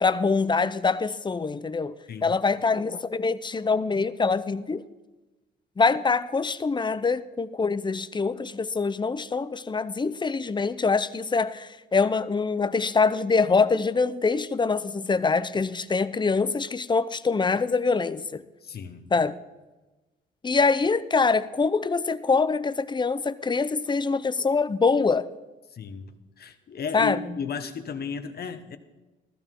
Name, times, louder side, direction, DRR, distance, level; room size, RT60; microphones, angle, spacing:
voice 1, 0.0-1.9 2.2-4.8 5.8-18.4 19.1-19.4 20.4-25.3 26.9-27.2, left 4 dB, 25° left, 0.6 m, -24 dB
voice 2, 18.6-19.1 25.7-28.8, left 6 dB, 50° left, 1.1 m, -34 dB
15.0 x 14.0 x 3.8 m
cardioid pair, 90°, 20 cm